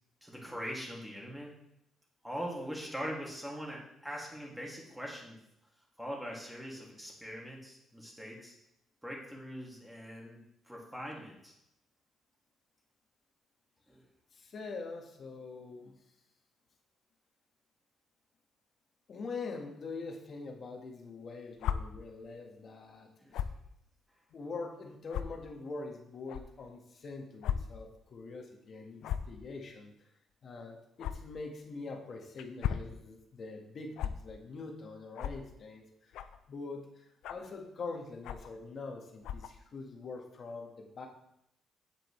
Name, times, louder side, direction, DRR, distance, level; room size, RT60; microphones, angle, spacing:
voice 1, 0.2-1.5 2.2-5.4 6.0-8.5 9.0-10.4 10.7-11.5 13.9-14.0 23.2-23.4, equal, 5° right, -2 dB, 2.4 m, -42 dB
voice 2, 14.3-15.9 19.1-23.1 24.3-30.1 30.4-36.2 36.5-41.1, left 3 dB, 50° left, 2 dB, 1.6 m, -44 dB
sound 1, 21.6-21.8 23.3-23.6 24.3-24.4 25.1-25.2 26.3-26.4 27.4-27.6 27.9-28.0 29.0-29.3 31.0-31.1 32.4-32.9 34.0-34.1 35.1-35.4 36.1-36.4 37.2-37.5 38.2-38.5 39.2-39.5, left 10 dB, 85° left, 0.5 m, -34 dB
8.6 x 7.7 x 3.3 m, 0.81 s
cardioid pair, 90°, 0 cm